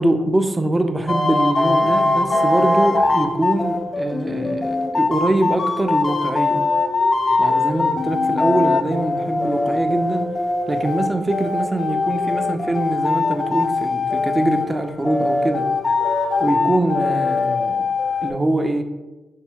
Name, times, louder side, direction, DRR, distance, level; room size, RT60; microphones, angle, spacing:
voice 1, 0.0-6.6 7.4-10.3 10.7-15.7 16.4-17.9 18.2-18.8, right 1 dB, 25° right, 6 dB, 0.4 m, -23 dB
sound 1, 1.1-18.3, left 3 dB, 35° left, 0.4 m, -21 dB
4.4 x 2.1 x 3.6 m, 1.1 s
hypercardioid pair, 40°, 0 cm